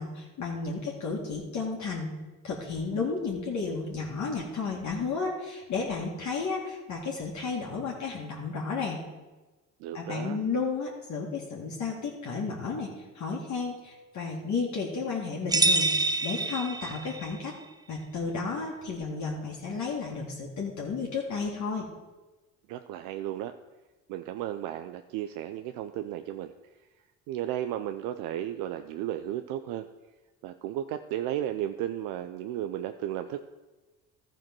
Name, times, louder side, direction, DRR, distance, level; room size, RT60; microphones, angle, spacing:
voice 1, 0.0-2.1 2.4-9.0 9.9-17.5 17.9-21.9, left 4 dB, 55° left, -3 dB, 2.2 m, -33 dB
voice 2, 9.8-10.4 22.7-23.5 24.1-26.5 27.3-29.9 30.4-33.4, right 12 dB, 75° right, 8 dB, 0.5 m, -34 dB
sound 1, 15.5-17.3, right 2 dB, 10° right, 0.5 m, -26 dB
12.5 x 4.5 x 6.0 m, 1.2 s
supercardioid pair, 75°, 34 cm